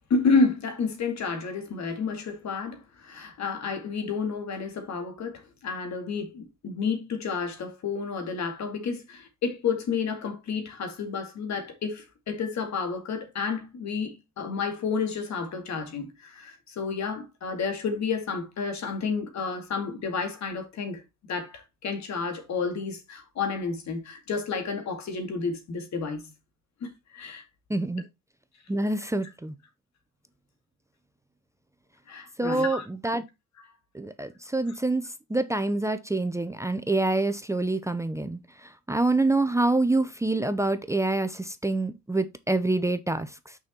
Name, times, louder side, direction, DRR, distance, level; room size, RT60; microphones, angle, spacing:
voice 1, 0.1-21.0 21.3-26.3 26.8-27.4 32.1-32.9, left 5 dB, 65° left, 2.4 m, -30 dB
voice 2, 27.7-28.0 28.7-29.5 32.4-33.2 33.9-43.6, right 2 dB, 10° right, 0.7 m, -26 dB
6.3 x 5.4 x 4.4 m
cardioid pair, 90°, 30 cm